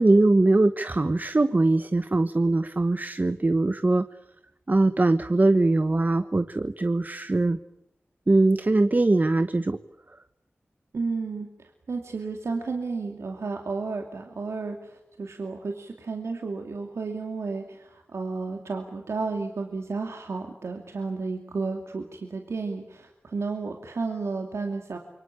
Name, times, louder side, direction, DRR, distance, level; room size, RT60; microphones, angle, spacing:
voice 1, 0.0-4.0 4.7-7.6 8.3-9.8, right 2 dB, 40° right, 11 dB, 1.1 m, -21 dB
voice 2, 10.9-25.0, right 4 dB, 85° right, 3 dB, 2.5 m, -32 dB
27.5 x 24.0 x 8.5 m, 0.83 s
cardioid pair, 50°, 5 cm